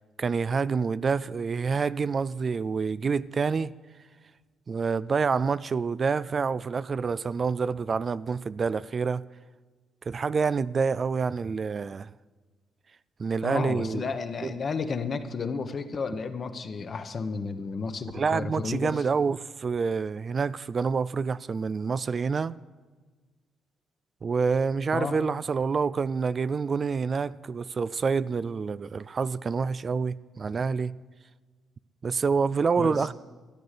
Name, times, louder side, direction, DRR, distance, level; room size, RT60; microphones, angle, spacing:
voice 1, 0.2-3.7 4.7-9.2 10.1-12.1 13.2-14.0 14.4-14.5 18.1-22.6 24.2-30.9 32.0-33.1, right 5 dB, 40° right, 0.3 m, -27 dB
voice 2, 13.4-18.9 24.9-25.2 32.8-33.1, left 5 dB, 45° left, 1.1 m, -32 dB
13.5 x 9.6 x 6.7 m
cardioid pair, 90°, 0 cm